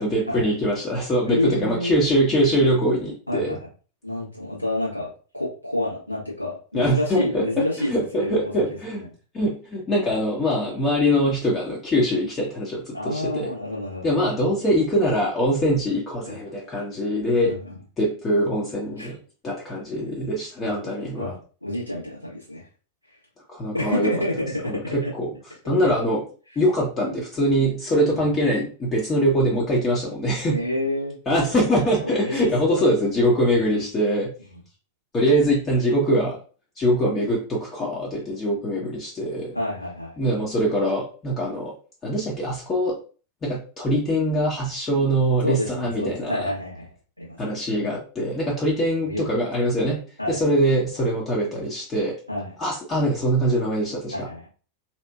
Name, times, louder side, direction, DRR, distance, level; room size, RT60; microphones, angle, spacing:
voice 1, 0.0-3.6 6.7-9.0 9.3-13.5 14.0-17.5 18.0-19.2 19.4-21.4 23.5-24.1 24.7-25.3 25.6-26.2 26.6-30.6 31.3-34.3 35.1-36.4 36.8-39.6 40.2-41.7 42.0-43.0 43.4-46.4 47.4-50.0 50.3-52.2 52.6-54.1, equal, 25° left, -3 dB, 0.7 m, -23 dB
voice 2, 1.2-1.9 3.3-3.7 4.0-8.4 8.9-9.1 12.9-14.1 16.2-16.4 17.4-17.8 19.0-19.1 20.6-20.7 21.2-22.7 23.7-25.1 25.8-25.9 28.0-28.4 30.4-31.2 32.0-32.9 34.5-34.6 39.5-40.2 45.4-46.9 47.2-47.6 49.0-49.3 50.2-50.4 52.3-52.5 54.1-54.5, left 1 dB, 85° left, -6 dB, 1.3 m, -29 dB
2.8 x 2.5 x 2.3 m, 0.37 s
figure-of-eight pair, 90°, 0 cm